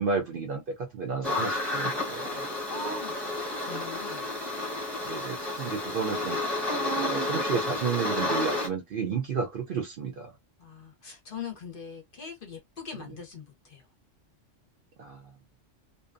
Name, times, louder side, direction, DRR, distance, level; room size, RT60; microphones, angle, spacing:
voice 1, 0.0-2.4 5.0-6.4 6.9-10.4 15.0-15.3, right 5 dB, 60° right, 0.6 m, -32 dB
sound 1, 1.2-8.7, left 2 dB, ahead, 0.8 m, -31 dB
voice 2, 2.4-4.3 10.6-13.8, left 4 dB, 50° left, 0.8 m, -42 dB
2.6 x 2.2 x 2.5 m
omnidirectional pair, 1.3 m